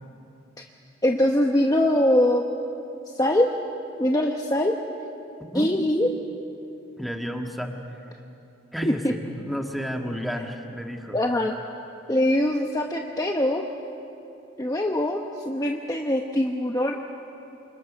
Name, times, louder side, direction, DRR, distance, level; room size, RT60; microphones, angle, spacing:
voice 1, 1.0-2.4 3.1-3.5 4.0-4.7 5.5-6.1 8.8-9.1 11.1-11.6 12.1-13.6 14.6-17.0, left 1 dB, 20° left, 2 dB, 1.0 m, -22 dB
voice 2, 7.0-7.7 8.7-11.2, equal, ahead, 2 dB, 1.7 m, -31 dB
28.5 x 27.0 x 6.3 m, 2.7 s
head